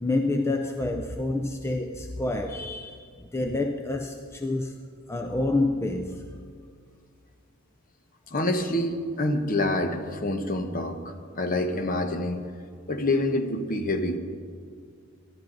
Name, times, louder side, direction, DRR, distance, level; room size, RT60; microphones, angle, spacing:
voice 1, 0.0-4.8 5.1-6.2, left 2 dB, 10° left, 0.5 m, -28 dB
voice 2, 8.3-12.5 12.9-14.2, left 1 dB, 40° left, 1.0 m, -27 dB
18.5 x 12.0 x 3.9 m
head